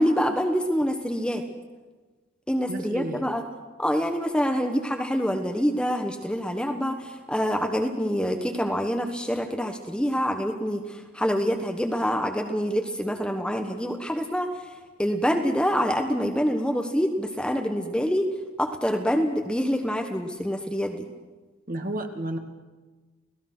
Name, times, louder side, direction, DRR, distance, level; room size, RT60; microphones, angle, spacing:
voice 1, 0.0-1.4 2.5-3.4 3.8-14.5 15.0-18.3 18.6-21.1, equal, 5° left, 4 dB, 1.2 m, -26 dB
voice 2, 2.7-3.3 21.7-22.4, right 1 dB, 40° right, 6 dB, 1.8 m, -31 dB
29.5 x 17.5 x 6.1 m, 1.3 s
head